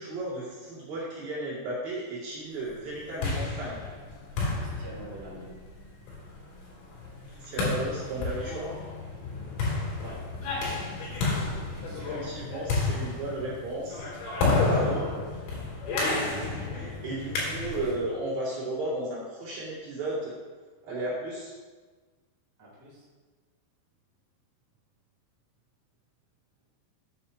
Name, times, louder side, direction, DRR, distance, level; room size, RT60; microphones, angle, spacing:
voice 1, 0.0-3.8 7.3-8.7 12.0-15.0 16.1-20.3 20.9-21.5, right 1 dB, 50° right, -8 dB, 3.8 m, -34 dB
sound 1, 2.9-18.0, left 3 dB, 70° left, 5.5 m, -31 dB
voice 2, 4.6-5.5 10.0-10.8 11.7-12.3 14.8-15.1 22.6-23.0, right 1 dB, 5° right, -7 dB, 2.4 m, -46 dB
12.5 x 9.7 x 2.9 m, 1.4 s
omnidirectional pair, 6.0 m